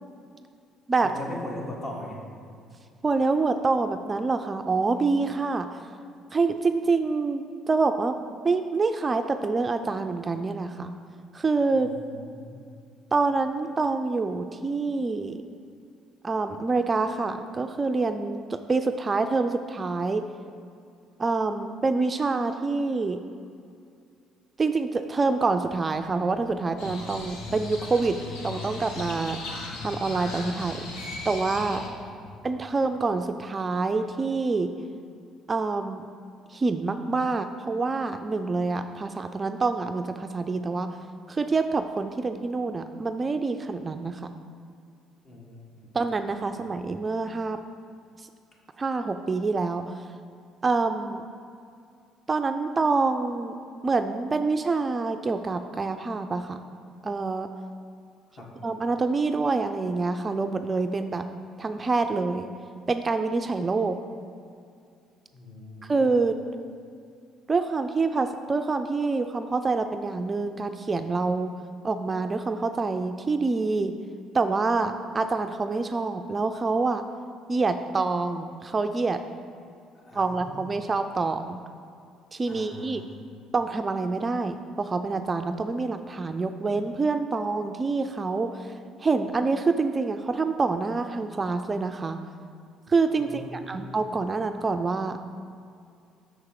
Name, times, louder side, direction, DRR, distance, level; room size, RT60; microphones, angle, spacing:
voice 1, 1.0-2.2 11.7-12.6 31.7-32.5 45.2-45.9 58.4-58.5 65.3-66.0 79.9-80.6 82.5-83.2 93.2-93.8, left 1 dB, 45° left, -1 dB, 1.7 m, -40 dB
voice 2, 3.0-5.8 6.3-8.2 8.4-10.9 11.3-11.9 13.1-15.4 16.2-20.2 21.2-23.2 24.6-28.2 28.4-29.4 29.8-30.9 31.3-31.8 32.4-34.7 35.5-36.0 36.5-41.0 41.3-44.3 45.9-47.6 48.8-50.0 50.6-51.2 52.3-53.5 53.8-56.6 57.0-57.5 58.6-61.3 61.6-62.5 62.9-64.0 65.9-66.4 67.5-71.5 71.8-73.9 74.3-77.0 77.5-79.2 80.1-81.6 82.3-83.0 83.5-88.7 89.0-92.2 92.9-95.2, right 3 dB, 25° right, 8 dB, 0.3 m, -26 dB
Crow, 26.8-31.9, left 3 dB, 80° left, 1.1 m, -37 dB
6.3 x 4.9 x 6.5 m, 2.4 s
cardioid pair, 100°, 0 cm